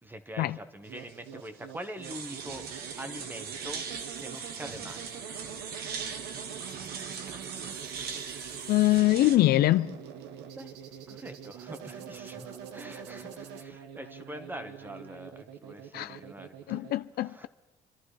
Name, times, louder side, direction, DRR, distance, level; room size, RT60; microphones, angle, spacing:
voice 1, 0.0-2.7 3.0-3.8 4.2-5.2 10.5-10.8 11.1-16.9 17.2-17.5, right 1 dB, 10° right, 1.2 m, -44 dB
sound 1, 0.8-16.9, right 8 dB, 90° right, 1.0 m, -45 dB
sound 2, 2.0-9.4, right 6 dB, 70° right, 1.5 m, -39 dB
voice 2, 8.7-10.0 15.9-16.2 16.7-17.5, left 16 dB, 65° left, 0.5 m, -24 dB
27.5 x 12.0 x 3.3 m
cardioid pair, 110°, 17 cm